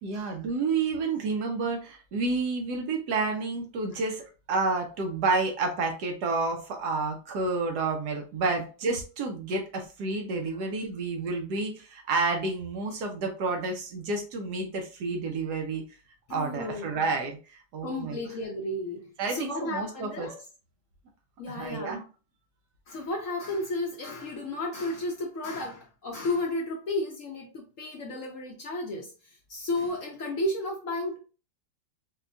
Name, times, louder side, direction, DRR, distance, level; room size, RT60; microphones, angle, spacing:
voice 1, 0.0-15.8 16.3-18.2 19.2-20.3 21.5-22.0, right 3 dB, 70° right, 1.2 m, -30 dB
voice 2, 16.3-17.0 17.8-20.4 21.4-22.0 22.9-31.2, left 2 dB, 65° left, 0.8 m, -33 dB
4.5 x 2.1 x 2.5 m
omnidirectional pair, 1.9 m